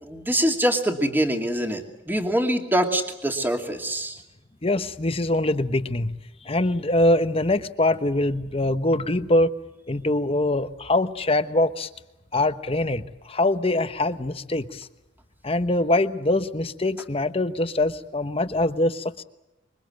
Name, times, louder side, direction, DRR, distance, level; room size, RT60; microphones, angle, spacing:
voice 1, 0.0-4.2, right 1 dB, 10° right, 3 dB, 2.4 m, -24 dB
voice 2, 4.6-6.2 6.4-9.5 9.9-11.9 12.3-14.9 15.4-19.2, left 1 dB, 30° left, 11 dB, 1.0 m, -23 dB
26.5 x 23.5 x 7.8 m, 0.94 s
head